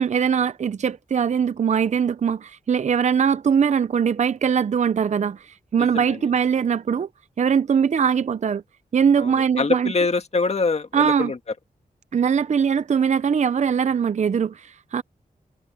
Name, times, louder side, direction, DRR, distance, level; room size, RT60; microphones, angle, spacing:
voice 1, 0.0-7.1 7.4-8.6 8.9-9.9 10.9-11.3 12.1-15.0, right 7 dB, 50° right, 0.5 m, -21 dB
voice 2, 5.8-6.2 9.2-11.4, left 4 dB, 45° left, 1.7 m, -24 dB
wide cardioid pair, 100°, 15 cm